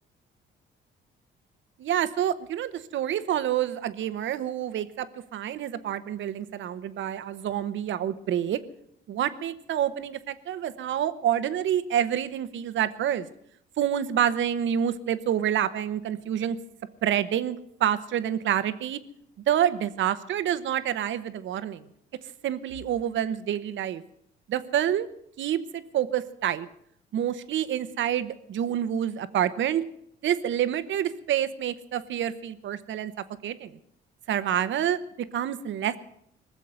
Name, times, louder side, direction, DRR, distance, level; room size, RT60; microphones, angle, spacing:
voice 1, 1.8-5.1 5.3-8.6 9.1-13.2 13.8-16.6 17.0-19.0 19.5-21.9 22.4-24.0 24.5-25.1 25.4-26.7 27.1-29.8 30.2-33.1 33.4-33.7 34.3-36.0, right 10 dB, 70° right, 12 dB, 1.0 m, -27 dB
20.0 x 7.3 x 9.4 m, 0.73 s
cardioid pair, 90°, 20 cm